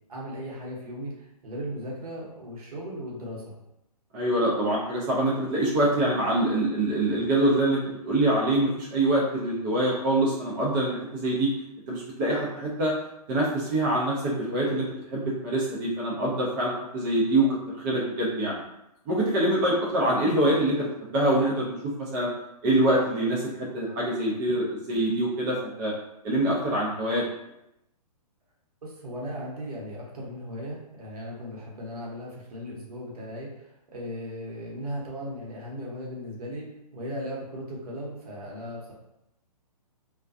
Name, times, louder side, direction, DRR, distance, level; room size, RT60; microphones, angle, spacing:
voice 1, 0.1-3.6 28.8-38.9, equal, 70° right, -3 dB, 1.0 m, -37 dB
voice 2, 4.1-11.5 11.9-12.9 13.3-17.6 17.8-18.6 19.1-22.3 22.6-25.9 26.2-27.2, right 1 dB, 30° right, -5 dB, 0.6 m, -25 dB
2.4 x 2.2 x 2.5 m, 0.84 s
hypercardioid pair, 140°, 20 cm